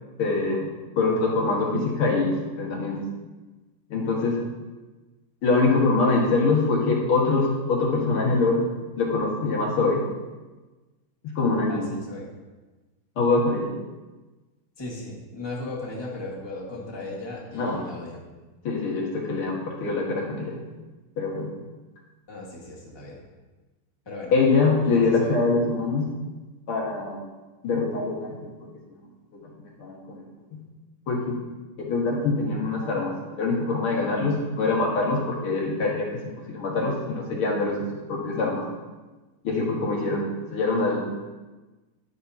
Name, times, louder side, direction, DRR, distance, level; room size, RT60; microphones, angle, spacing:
voice 1, 0.2-0.7 1.0-3.0 3.9-4.4 5.4-8.6 9.0-10.0 11.2-11.9 13.2-13.7 17.5-17.8 18.6-20.6 21.2-21.5 24.3-26.1 26.7-27.3 27.6-28.5 29.4-30.2 31.1-31.2 31.8-36.1 36.5-37.8 38.1-38.6 39.4-40.2 40.5-41.0, left 3 dB, 90° left, -3 dB, 2.5 m, -24 dB
voice 2, 11.7-12.3 14.8-18.2 22.3-23.2 24.0-24.3 24.9-25.3, left 2 dB, 15° left, -4 dB, 1.5 m, -36 dB
11.5 x 6.6 x 2.8 m, 1.2 s
omnidirectional pair, 2.3 m